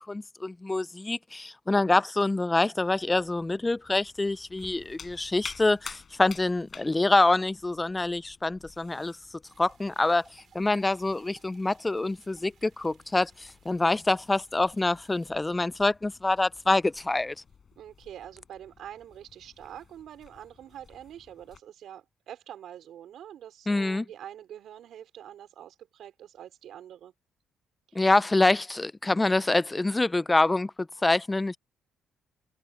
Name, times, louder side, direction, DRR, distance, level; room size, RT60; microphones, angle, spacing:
voice 1, 0.0-9.2 9.6-10.2 10.5-17.3 23.7-24.0 28.0-30.7 31.0-31.6, left 2 dB, 15° left, 0.4 m, -26 dB
sound 1, 2.7-21.6, left 6 dB, 45° left, 6.8 m, -51 dB
sound 2, 9.4-15.3, right 8 dB, 60° right, 6.8 m, -63 dB
voice 2, 17.8-27.1 27.9-28.0, right 10 dB, 75° right, 4.6 m, -45 dB
cardioid pair, 90°, 0 cm